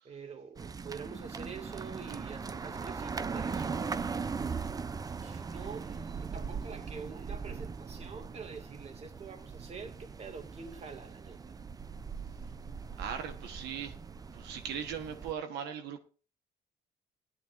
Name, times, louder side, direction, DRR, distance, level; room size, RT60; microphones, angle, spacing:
voice 1, 0.0-4.0 5.2-11.6, right 5 dB, 40° right, 2.2 m, -46 dB
sound 1, 0.6-15.3, right 5 dB, 20° right, 0.5 m, -40 dB
voice 2, 13.0-14.0 14.3-16.0, right 8 dB, 85° right, 1.3 m, -39 dB
16.5 x 11.0 x 2.6 m
cardioid pair, 110°, 17 cm